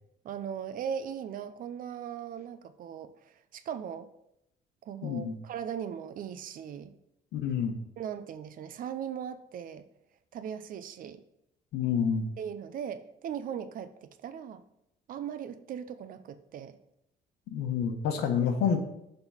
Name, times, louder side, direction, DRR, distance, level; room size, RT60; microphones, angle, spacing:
voice 1, 0.2-4.1 4.9-6.9 8.0-9.9 10.3-11.2 12.4-14.6 15.1-16.8, right 8 dB, 55° right, 11 dB, 0.6 m, -38 dB
voice 2, 5.0-5.4 7.3-7.7 11.7-12.3 17.5-18.8, left 7 dB, 80° left, 6 dB, 1.1 m, -28 dB
6.9 x 3.8 x 5.7 m, 0.82 s
cardioid pair, 110°, 17 cm